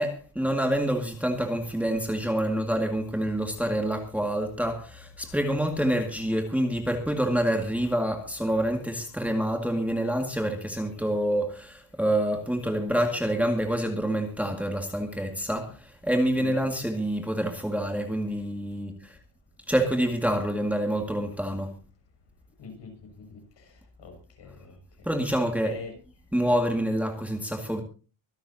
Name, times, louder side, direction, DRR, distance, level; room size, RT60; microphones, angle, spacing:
voice 1, 0.0-19.2 19.7-21.7 25.0-25.7 26.3-27.8, right 1 dB, 5° right, 2.1 m, -27 dB
voice 2, 16.4-16.9 22.6-23.7 24.0-24.8 25.3-26.0, left 4 dB, 55° left, 6.7 m, -44 dB
25.0 x 12.0 x 2.8 m
cardioid pair, 150°, 50 cm